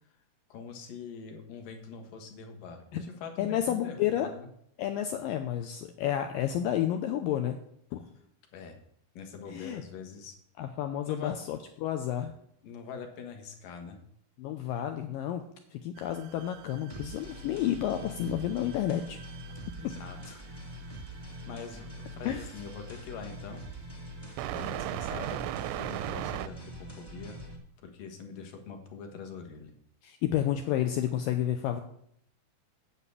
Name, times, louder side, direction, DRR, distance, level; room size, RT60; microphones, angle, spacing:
voice 1, 0.5-4.5 8.5-8.8 9.1-10.4 11.1-11.4 12.6-14.0 19.8-20.4 21.4-23.6 24.5-27.4 27.8-29.7, left 5 dB, 60° left, 5 dB, 2.8 m, -44 dB
voice 2, 3.4-4.3 4.8-7.6 7.9-8.0 9.5-9.8 10.6-12.3 14.4-15.4 15.7-19.2 19.8-19.9 22.3-22.5 30.0-31.8, left 11 dB, 85° left, 7 dB, 2.0 m, -30 dB
sound 1, 16.0-26.5, right 14 dB, 90° right, 2.7 m, -40 dB
sound 2, 16.9-27.6, right 1 dB, 10° left, 1.0 m, -44 dB
9.1 x 6.7 x 8.5 m, 0.69 s
omnidirectional pair, 4.7 m